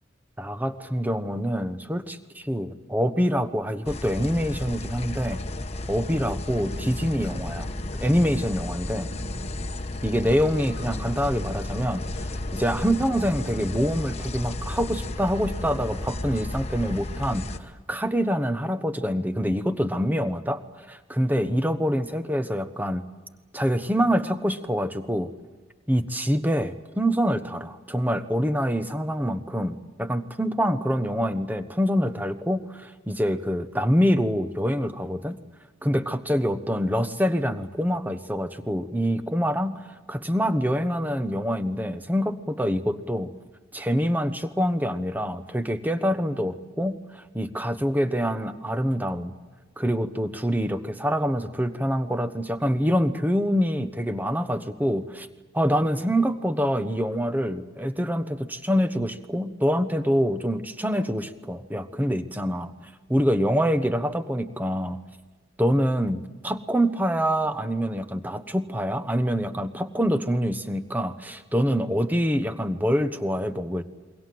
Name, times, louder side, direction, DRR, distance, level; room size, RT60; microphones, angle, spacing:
voice 1, 0.4-5.4 5.9-7.7 8.0-9.1 10.0-12.0 12.5-23.0 23.5-25.3 25.9-35.4 35.8-39.8 40.1-43.3 43.7-49.3 49.8-55.3 55.5-62.7 63.1-65.0 65.6-73.8, equal, 10° right, 10 dB, 1.1 m, -25 dB
sound 1, 3.8-17.6, left 2 dB, 30° left, 1.2 m, -33 dB
29.0 x 23.0 x 7.8 m, 1.3 s
head